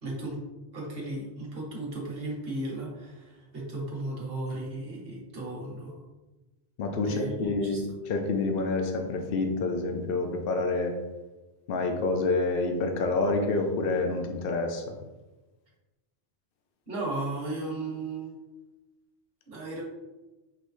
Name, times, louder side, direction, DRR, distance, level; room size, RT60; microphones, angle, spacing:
voice 1, 0.0-0.4 0.7-6.0 7.0-7.8 16.9-18.3 19.5-19.8, right 2 dB, 55° right, -3 dB, 1.5 m, -35 dB
voice 2, 6.8-10.9 11.7-14.8, left 3 dB, 55° left, 4 dB, 0.8 m, -28 dB
5.5 x 3.1 x 3.1 m, 1.1 s
omnidirectional pair, 1.2 m